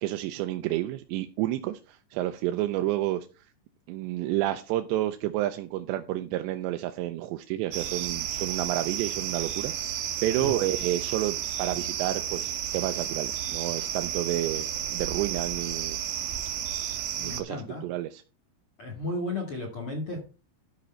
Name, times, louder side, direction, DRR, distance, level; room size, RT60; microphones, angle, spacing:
voice 1, 0.0-3.3 3.9-16.0 17.2-18.2, right 14 dB, 90° right, 7 dB, 2.8 m, -30 dB
sound 1, 7.7-17.4, right 10 dB, 70° right, 2.3 m, -32 dB
voice 2, 17.2-17.8 18.8-20.2, left 2 dB, 40° left, 0 dB, 2.1 m, -34 dB
12.5 x 5.2 x 4.3 m, 0.34 s
omnidirectional pair, 5.0 m